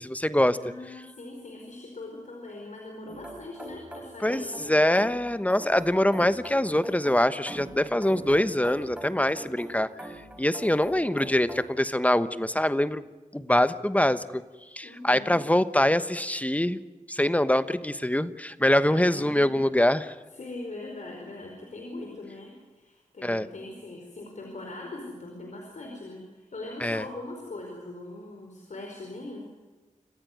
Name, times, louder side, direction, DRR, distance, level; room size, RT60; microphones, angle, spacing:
voice 1, 0.0-0.6 4.2-9.9 10.4-13.0 13.3-14.4 14.7-16.8 17.1-20.1 23.2-23.5 26.8-27.0, left 1 dB, 10° left, 13 dB, 1.1 m, -24 dB
voice 2, 0.5-5.0 14.8-15.4 18.8-19.6 20.3-29.5, left 2 dB, 70° left, 1 dB, 4.9 m, -41 dB
sound 1, 3.1-11.8, right 1 dB, 10° right, 4.4 m, -43 dB
27.0 x 15.0 x 9.4 m, 1.3 s
wide cardioid pair, 65°, 13 cm